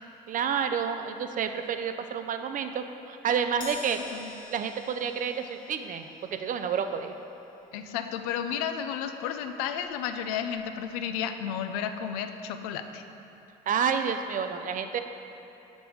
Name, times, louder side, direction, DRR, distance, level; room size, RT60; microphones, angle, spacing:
voice 1, 0.3-4.0 4.5-6.1 6.4-7.1 13.7-15.0, right 7 dB, 45° right, 8 dB, 0.5 m, -29 dB
Crash cymbal, 3.6-10.2 10.6-10.8 11.8-11.9, left 3 dB, 45° left, 1.4 m, -49 dB
voice 2, 7.7-13.0, left 8 dB, 90° left, 8 dB, 0.4 m, -32 dB
6.2 x 5.2 x 4.7 m, 3.0 s
supercardioid pair, 70°, 18 cm